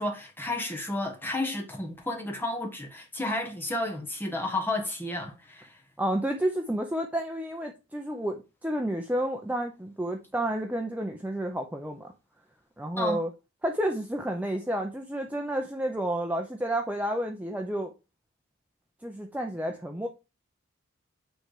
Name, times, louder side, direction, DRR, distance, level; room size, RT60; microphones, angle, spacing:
voice 1, 0.0-5.8 13.0-13.2, left 2 dB, 10° left, 1.2 m, -32 dB
voice 2, 6.0-12.1 12.8-13.3 13.6-17.9 19.0-20.1, right 1 dB, 5° right, 0.6 m, -30 dB
9.0 x 3.3 x 4.9 m
head